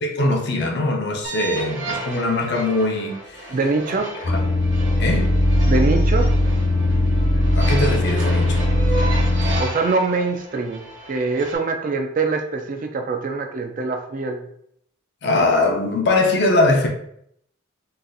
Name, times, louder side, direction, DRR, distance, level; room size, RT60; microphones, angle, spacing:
voice 1, 0.0-3.2 4.3-4.4 5.0-5.3 7.5-8.7 15.2-16.9, left 2 dB, 55° left, 0.6 m, -21 dB
sound 1, 1.2-11.6, right 2 dB, 60° right, 1.1 m, -33 dB
voice 2, 3.5-4.1 5.7-6.3 9.5-14.4, right 3 dB, 40° right, 0.3 m, -24 dB
sound 2, 4.2-9.6, left 1 dB, 85° left, 0.9 m, -19 dB
3.9 x 2.4 x 2.6 m
head